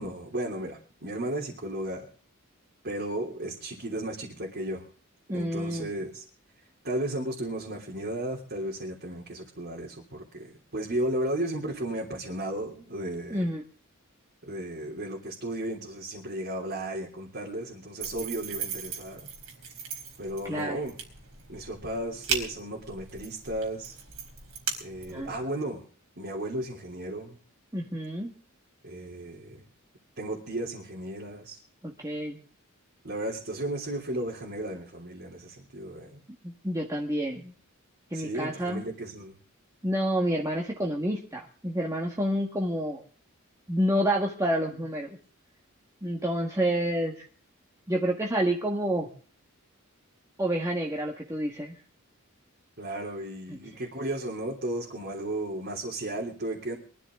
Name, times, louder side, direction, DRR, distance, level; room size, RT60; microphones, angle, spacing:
voice 1, 0.0-2.1 2.8-4.8 5.3-6.2 6.8-13.4 14.4-19.3 20.2-21.0 21.5-24.0 24.8-25.8 26.2-27.4 28.8-29.6 30.2-31.6 33.0-36.2 38.1-39.4 52.8-56.8, right 1 dB, 55° right, -4 dB, 3.3 m, -34 dB
voice 2, 5.3-5.9 13.3-13.6 20.4-20.8 25.1-25.3 27.7-28.3 31.8-32.4 36.4-37.5 38.1-38.8 39.8-43.0 43.7-45.2 46.0-47.2 47.9-49.1 50.4-51.7, right 1 dB, 15° right, -1 dB, 1.7 m, -28 dB
sound 1, 18.0-25.4, right 6 dB, 80° right, 4.2 m, -38 dB
23.0 x 13.0 x 3.8 m, 0.41 s
head